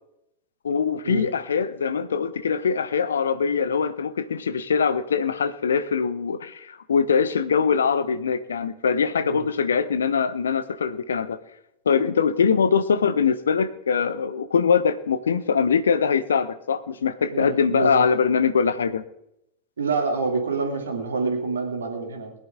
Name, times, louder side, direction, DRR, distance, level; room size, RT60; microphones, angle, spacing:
voice 1, 0.6-11.4 11.8-19.0, left 6 dB, 70° left, 13 dB, 0.9 m, -22 dB
voice 2, 17.3-18.1 19.8-22.3, right 4 dB, 70° right, 3 dB, 2.8 m, -27 dB
21.5 x 10.5 x 3.8 m, 0.80 s
figure-of-eight pair, 90°, 0 cm